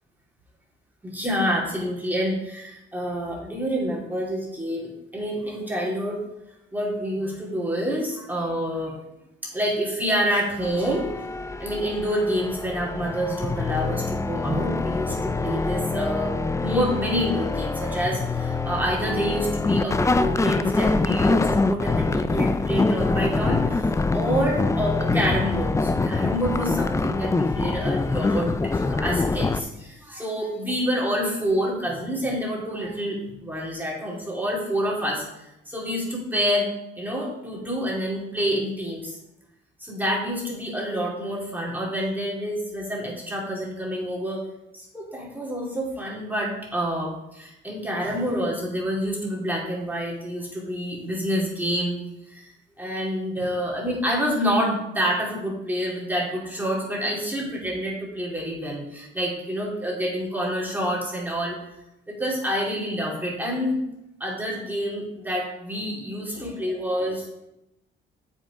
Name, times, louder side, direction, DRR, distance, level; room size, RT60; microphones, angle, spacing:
voice 1, 1.0-6.2 6.7-9.0 9.4-11.1 11.6-33.2 33.4-36.7 37.0-39.2 39.8-44.4 44.7-52.0 52.3-52.5 52.8-61.6 62.1-63.8 64.2-67.4, equal, 10° right, -4 dB, 2.7 m, -27 dB
sound 1, 10.6-29.6, left 3 dB, 15° left, 0.4 m, -25 dB
7.3 x 5.3 x 5.0 m, 0.88 s
cardioid pair, 90°, 20 cm